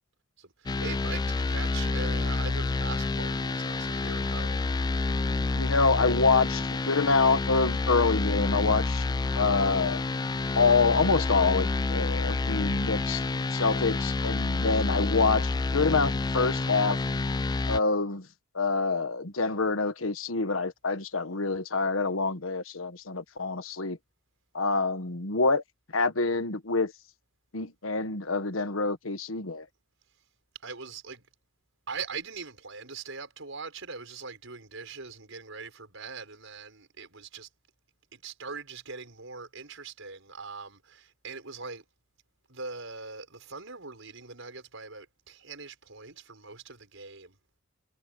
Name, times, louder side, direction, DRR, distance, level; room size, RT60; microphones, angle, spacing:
voice 1, 0.4-4.6 30.6-31.2 31.9-37.5 38.1-41.8 42.5-47.4, right 4 dB, 70° right, 7.2 m, -41 dB
sound 1, 0.7-17.8, left 3 dB, 20° left, 0.3 m, -28 dB
voice 2, 5.5-9.1 9.3-10.0 10.5-13.2 13.5-17.0 17.7-18.3 18.5-24.0 24.5-25.6 25.9-26.9 27.5-29.6, left 4 dB, 80° left, 1.4 m, -26 dB
head